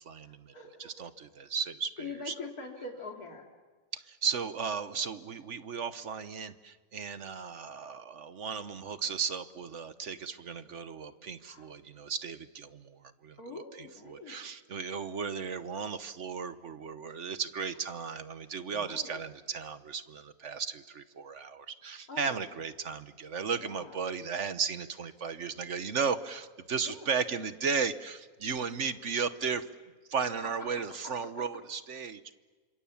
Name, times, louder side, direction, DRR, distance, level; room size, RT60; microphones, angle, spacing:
voice 1, 0.0-0.5 0.8-2.3 3.9-29.7 30.1-32.2, right 6 dB, 60° right, 12 dB, 1.3 m, -35 dB
voice 2, 0.5-1.0 2.0-3.4 11.4-11.7 13.4-14.4 18.7-19.2 22.1-22.4 23.6-24.0 26.8-27.1, left 3 dB, 90° left, 0 dB, 3.2 m, -44 dB
29.5 x 27.0 x 7.2 m, 1.4 s
omnidirectional pair, 1.5 m